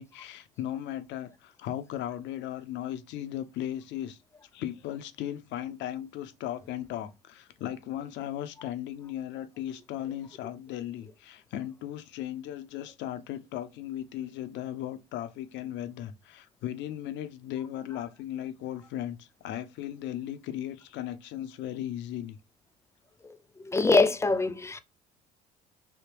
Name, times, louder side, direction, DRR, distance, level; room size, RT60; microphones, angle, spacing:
voice 1, 0.0-4.2 4.5-22.4, left 11 dB, 60° left, 0.6 m, -37 dB
voice 2, 23.7-24.8, left 3 dB, 15° left, 0.5 m, -23 dB
3.5 x 2.8 x 2.9 m
hypercardioid pair, 70°, 21 cm